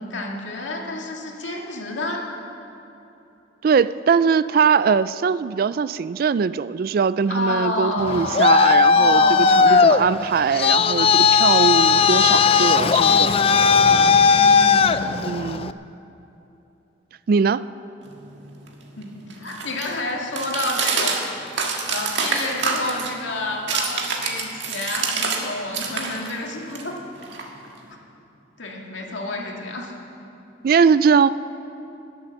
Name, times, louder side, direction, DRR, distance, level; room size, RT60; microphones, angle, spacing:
voice 1, 0.0-2.3 7.3-8.6 8.9-9.9 14.2-15.3 19.0-21.2 21.9-27.0 28.6-30.0, left 2 dB, 80° left, 0 dB, 2.1 m, -29 dB
voice 2, 3.6-13.3 15.2-15.7 17.3-17.7 30.6-31.3, right 6 dB, 50° right, 16 dB, 0.3 m, -21 dB
Traffic noise roadway noise, 8.0-15.7, left 5 dB, 30° left, 0.3 m, -16 dB
sound 1, 18.1-25.4 25.7-27.9, right 4 dB, 70° right, 1.6 m, -28 dB
20.5 x 7.8 x 7.1 m, 2.9 s
head